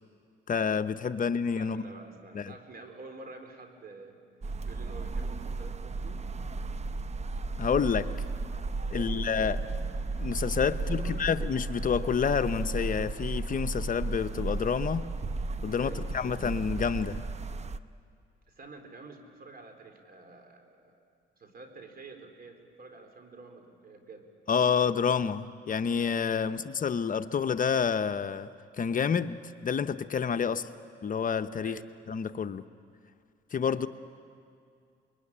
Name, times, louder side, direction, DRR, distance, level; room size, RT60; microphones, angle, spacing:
voice 1, 0.5-1.8 2.3-2.5 7.6-8.1 8.9-9.6 10.2-15.1 15.6-17.2 24.5-28.5 28.8-30.7 31.0-31.8 32.1-32.6 33.5-33.9, left 6 dB, 45° left, 10 dB, 0.8 m, -28 dB
voice 2, 1.6-4.2 4.6-6.3 8.8-9.4 10.7-11.3 15.7-16.1 18.5-21.0 21.4-24.3 26.4-27.0 30.4-30.7 31.6-31.9 33.7-33.9, right 3 dB, 50° right, 5 dB, 4.1 m, -49 dB
sound 1, 4.4-17.8, right 3 dB, 35° right, 0.8 m, -34 dB
26.0 x 22.0 x 10.0 m, 2.4 s
cardioid pair, 90°, 20 cm